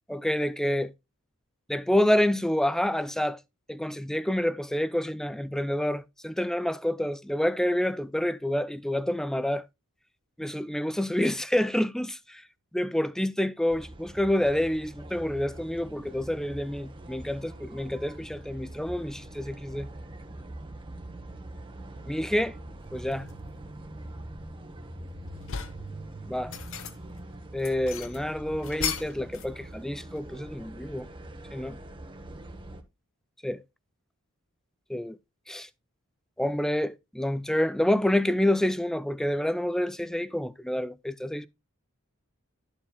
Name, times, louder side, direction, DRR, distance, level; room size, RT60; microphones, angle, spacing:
voice 1, 0.1-0.9 1.7-3.4 3.7-9.6 10.4-12.4 12.7-19.9 22.1-22.6 22.9-23.3 26.3-26.5 27.5-31.1 31.5-31.8 33.4-33.6 34.9-35.2 35.5-35.7 36.4-41.5, left 1 dB, ahead, 0.4 m, -28 dB
sound 1, 13.7-32.8, right 1 dB, 25° right, 1.0 m, -43 dB
sound 2, 23.1-23.4 23.9-24.9 25.2-25.9 26.3-27.2 27.6-29.6 29.8-30.8, left 7 dB, 65° left, 1.0 m, -37 dB
12.0 x 7.1 x 2.2 m
head